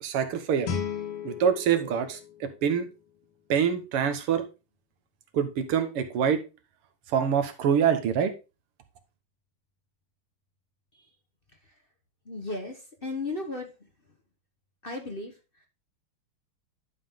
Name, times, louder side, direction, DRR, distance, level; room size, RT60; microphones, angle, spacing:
voice 1, 0.0-0.7 1.2-2.9 3.5-4.5 5.3-6.4 7.1-8.3, right 7 dB, 85° right, 9 dB, 2.1 m, -25 dB
Guitar, 0.6-3.4, left 6 dB, 80° left, 2.4 m, -36 dB
voice 2, 12.3-13.7 14.8-15.3, left 2 dB, 30° left, 3 dB, 1.2 m, -34 dB
11.0 x 5.5 x 3.6 m, 0.28 s
omnidirectional pair, 2.4 m